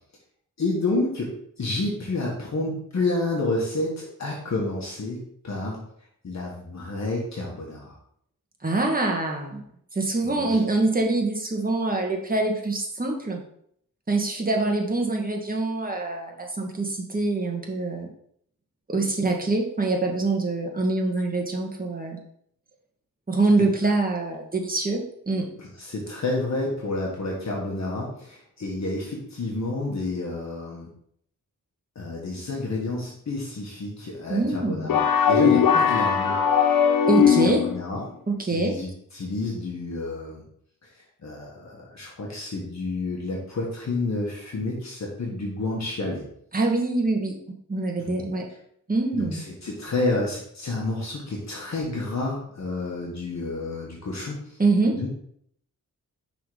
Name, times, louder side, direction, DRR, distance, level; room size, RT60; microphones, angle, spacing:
voice 1, 0.6-1.3 1.6-5.8 6.2-7.9 10.2-10.6 25.6-30.9 31.9-36.4 37.2-38.1 38.5-40.4 40.9-46.2 48.0-48.2 49.1-54.6 54.9-55.1, left 2 dB, 55° left, -3 dB, 1.6 m, -30 dB
voice 2, 8.6-9.6 9.9-13.4 14.1-18.1 18.9-22.2 23.3-25.5 34.3-35.0 37.1-37.6 38.3-38.7 46.5-47.4 47.7-48.4 48.9-49.4 54.6-55.0, right 2 dB, 25° right, 1 dB, 1.6 m, -25 dB
sound 1, 34.9-37.8, left 7 dB, 80° left, 0.9 m, -19 dB
5.8 x 4.1 x 5.0 m, 0.68 s
cardioid pair, 60°, 33 cm